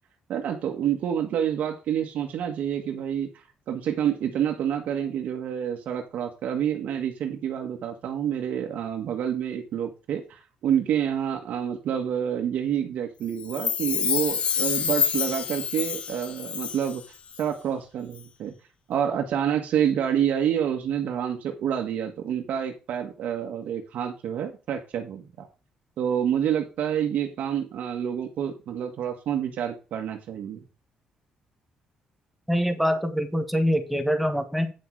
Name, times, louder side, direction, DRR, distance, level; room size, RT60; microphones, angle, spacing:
voice 1, 0.3-3.3 3.7-17.0 17.4-18.5 18.9-25.5 26.0-30.6, right 9 dB, 60° right, 4 dB, 1.6 m, -28 dB
Chime, 13.4-17.0 17.3-17.4, left 7 dB, 40° left, 0.8 m, -27 dB
voice 2, 32.5-34.7, equal, ahead, 7 dB, 1.3 m, -24 dB
9.1 x 6.2 x 4.7 m, 0.32 s
cardioid pair, 155°, 3 cm